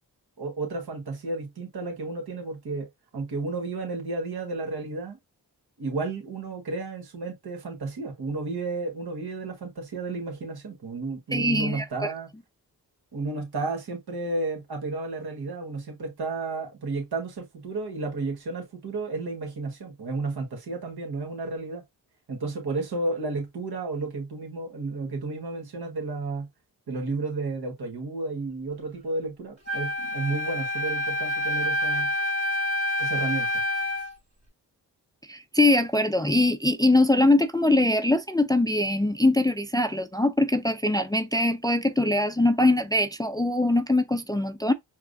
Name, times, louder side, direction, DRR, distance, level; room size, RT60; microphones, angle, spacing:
voice 1, 0.4-2.9 3.1-5.2 5.8-12.3 13.1-21.8 22.3-26.5 26.9-32.1 33.0-33.5, right 3 dB, 70° right, 1.5 m, -32 dB
voice 2, 11.3-11.8 35.3-44.7, left 2 dB, 10° left, 0.4 m, -22 dB
Wind instrument woodwind instrument, 29.7-34.1, left 1 dB, 40° right, 2.2 m, -27 dB
4.6 x 2.1 x 2.6 m
cardioid pair, 40°, 40 cm